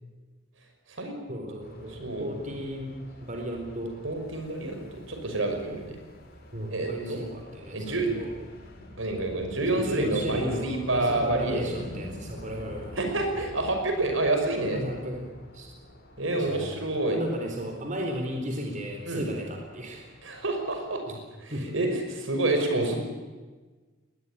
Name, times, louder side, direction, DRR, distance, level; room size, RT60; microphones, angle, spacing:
voice 1, 1.3-2.9 3.2-4.0 6.5-8.3 9.6-13.0 14.7-15.7 16.3-20.0 21.1-21.2 21.5-21.7, equal, 40° right, 2 dB, 4.1 m, -35 dB
sound 1, 1.6-20.9, left 1 dB, 50° left, 5.5 m, -47 dB
voice 2, 1.9-2.3 4.0-6.0 6.7-7.2 7.7-8.1 9.0-11.6 13.0-14.8 16.2-17.2 19.1-19.3 20.2-21.0 21.4-23.0, right 2 dB, 75° right, 4 dB, 5.9 m, -28 dB
21.0 x 20.5 x 10.0 m, 1.3 s
head